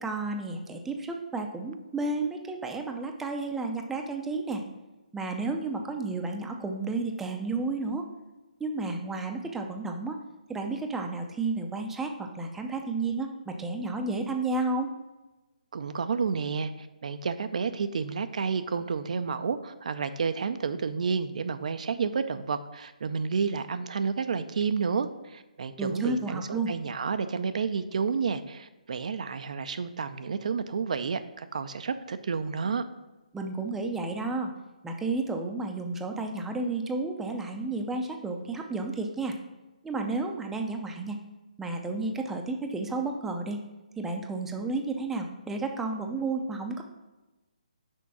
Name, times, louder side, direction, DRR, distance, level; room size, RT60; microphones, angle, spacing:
voice 1, 0.0-4.6 5.1-8.1 8.6-10.2 10.5-14.9 25.8-26.7 33.3-34.5 34.8-39.4 39.8-41.2 41.6-43.6 44.0-46.8, right 3 dB, 5° right, 3 dB, 0.5 m, -32 dB
voice 2, 15.7-32.8, right 5 dB, 60° right, 10 dB, 0.5 m, -30 dB
6.2 x 4.5 x 5.8 m, 1.1 s
figure-of-eight pair, 150°, 4 cm